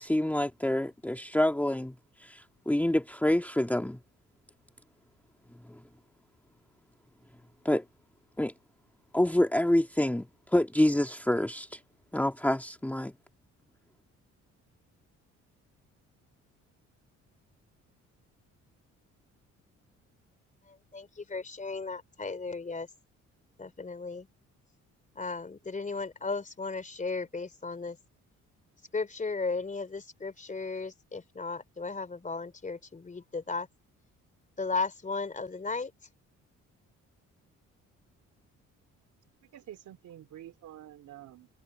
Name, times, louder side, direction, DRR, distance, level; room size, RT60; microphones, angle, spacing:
voice 1, 0.0-2.0 2.2-4.0 5.7-5.8 7.6-7.8 8.4-8.5 9.1-11.8 12.1-13.1, left 1 dB, 5° left, 1.9 m, -27 dB
voice 2, 20.9-22.9 23.6-24.3 25.1-28.0 28.9-33.7 34.6-35.9, left 4 dB, 25° left, 3.4 m, -35 dB
voice 3, 39.4-41.5, right 12 dB, 75° right, 3.7 m, -48 dB
cardioid pair, 90°, 30 cm